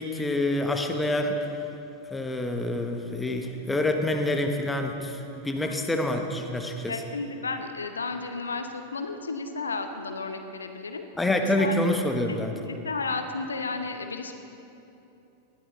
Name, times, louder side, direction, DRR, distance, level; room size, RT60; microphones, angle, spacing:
voice 1, 0.0-1.4 2.1-6.9 11.2-12.5, left 1 dB, 10° left, 4 dB, 1.3 m, -27 dB
voice 2, 5.6-6.0 6.9-11.0 11.4-11.8 12.2-14.3, left 4 dB, 75° left, 7 dB, 0.9 m, -33 dB
19.5 x 13.0 x 3.9 m, 2.9 s
figure-of-eight pair, 90°, 0 cm